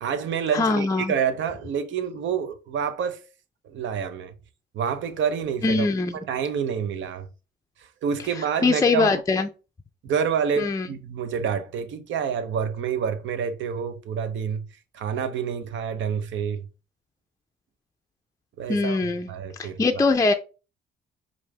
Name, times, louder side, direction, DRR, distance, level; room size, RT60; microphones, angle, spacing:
voice 1, 0.0-3.2 3.6-4.3 4.7-5.9 6.3-7.3 8.0-9.2 10.0-14.7 14.9-16.7 18.6-20.1, right 7 dB, 70° right, 0.7 m, -28 dB
voice 2, 0.5-1.1 5.6-6.1 8.6-9.5 10.6-10.9 18.7-19.3 19.6-20.3, left 3 dB, 15° left, 0.4 m, -22 dB
5.0 x 2.6 x 3.2 m
cardioid pair, 90°, 20 cm